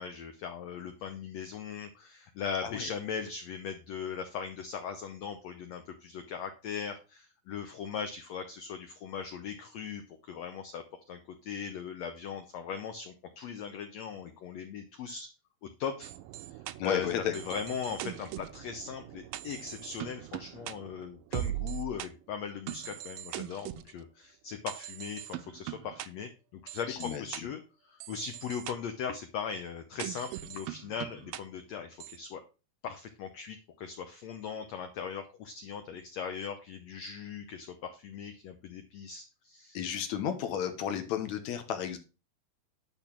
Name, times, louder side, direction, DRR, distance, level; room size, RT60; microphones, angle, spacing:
voice 1, 0.0-15.3 15.6-16.1 16.8-17.1 17.3-32.4 32.8-39.8, left 7 dB, 90° left, 7 dB, 1.5 m, -39 dB
sound 1, 16.0-22.1 22.7-23.9 24.7-26.1 26.7-27.4 28.0-28.7 30.0-31.4 32.0-32.2, right 15 dB, 80° right, 2.2 m, -41 dB
voice 2, 16.8-17.3 26.9-27.5 39.7-42.0, left 9 dB, 65° left, 7 dB, 1.9 m, -33 dB
10.5 x 3.6 x 5.9 m, 0.32 s
omnidirectional pair, 4.2 m